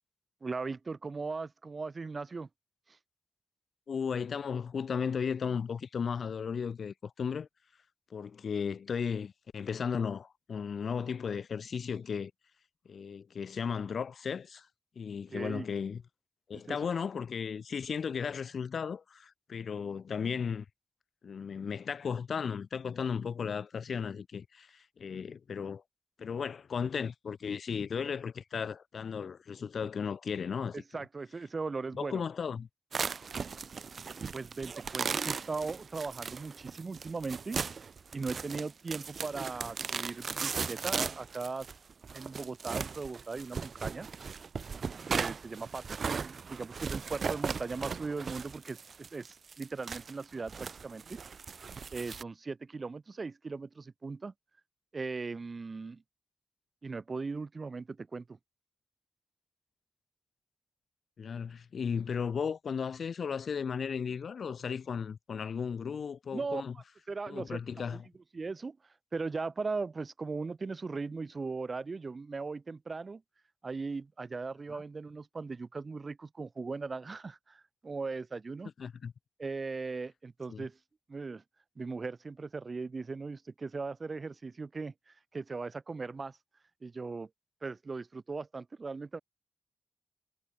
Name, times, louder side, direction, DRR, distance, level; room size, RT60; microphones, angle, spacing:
voice 1, 0.4-2.5 15.3-15.7 16.5-16.8 30.7-32.2 34.3-37.6 38.1-41.7 42.1-44.1 45.1-51.2 51.9-54.3 54.9-56.0 56.8-58.4 66.3-66.6 67.1-68.0 68.3-68.8 69.1-73.2 73.6-78.7 79.4-80.8 81.1-81.4 81.8-86.4 86.8-87.3 87.6-89.2, right 4 dB, 45° right, 4.2 m, -38 dB
voice 2, 3.9-7.5 8.1-12.3 12.9-14.7 14.9-16.0 16.5-20.6 21.2-25.8 26.2-31.0 31.9-32.7 61.2-66.7 67.3-68.0 74.7-74.8 78.8-79.1 80.5-80.7, left 6 dB, 75° left, 1.3 m, -35 dB
sound 1, 32.9-52.2, right 5 dB, 65° right, 1.2 m, -37 dB
cardioid pair, 80°, 0 cm